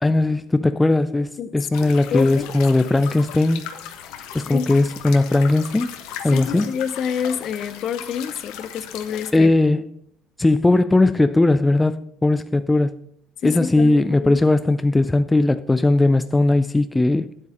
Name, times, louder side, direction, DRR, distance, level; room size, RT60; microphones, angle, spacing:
voice 1, 0.0-3.7 4.3-6.0 6.2-6.7 9.3-9.8 10.4-12.9 13.4-17.3, left 2 dB, 10° left, 0.4 m, -18 dB
sound 1, 1.7-9.3, left 9 dB, 85° left, 1.2 m, -37 dB
voice 2, 2.1-2.5 4.5-4.7 6.3-9.5 13.4-14.4, left 7 dB, 50° left, 0.7 m, -27 dB
10.0 x 8.2 x 5.1 m
cardioid pair, 115°, 0 cm